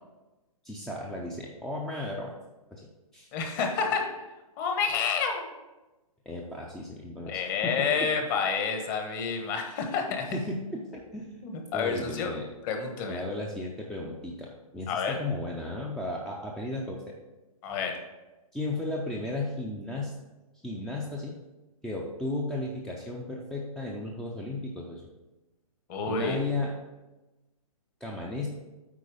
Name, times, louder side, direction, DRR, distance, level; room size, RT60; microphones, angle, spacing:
voice 1, 0.6-2.3 2.7-2.9 3.1-3.3 6.3-7.9 10.3-11.4 11.7-12.4 13.1-17.1 18.5-20.1 20.6-21.3 21.8-25.0 26.0-26.7 28.0-28.5, left 2 dB, ahead, -2 dB, 0.5 m, -34 dB
voice 2, 3.3-4.1 4.6-5.5 7.3-10.4 11.4-12.3 12.6-13.2 14.9-15.2 17.6-17.9 25.9-26.4, left 5 dB, 35° left, 4 dB, 1.3 m, -29 dB
8.3 x 4.7 x 4.9 m, 1.1 s
hypercardioid pair, 145°, 19 cm